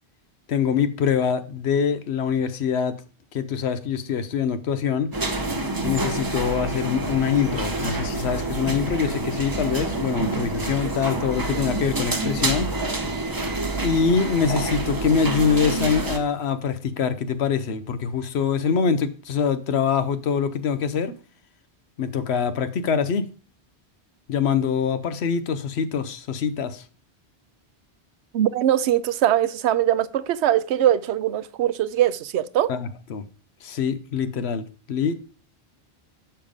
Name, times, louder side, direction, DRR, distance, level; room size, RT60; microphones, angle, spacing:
voice 1, 0.5-3.0 3.3-5.1 5.8-12.7 13.8-21.1 22.0-23.3 24.3-26.8 32.7-33.2 33.6-35.1, left 6 dB, 80° left, 1.0 m, -24 dB
sound 1, 5.1-16.2, right 2 dB, 20° right, 0.8 m, -27 dB
voice 2, 28.3-32.7, right 11 dB, 80° right, 0.8 m, -21 dB
6.9 x 5.6 x 5.0 m
omnidirectional pair, 1.1 m